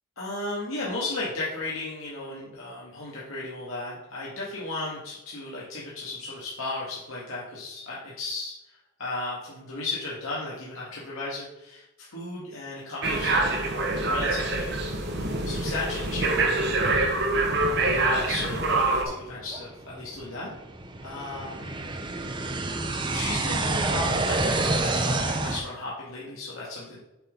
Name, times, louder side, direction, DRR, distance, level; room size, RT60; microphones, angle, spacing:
voice 1, 0.2-8.5 9.0-14.7 15.1-16.8 17.6-20.5 21.0-21.8 23.1-27.0, left 2 dB, 80° left, -6 dB, 1.9 m, -35 dB
sound 1, 13.0-19.0, right 2 dB, 55° right, 1.2 m, -25 dB
sound 2, 18.8-25.6, right 2 dB, 20° right, 0.6 m, -29 dB
8.1 x 4.1 x 5.3 m, 0.94 s
head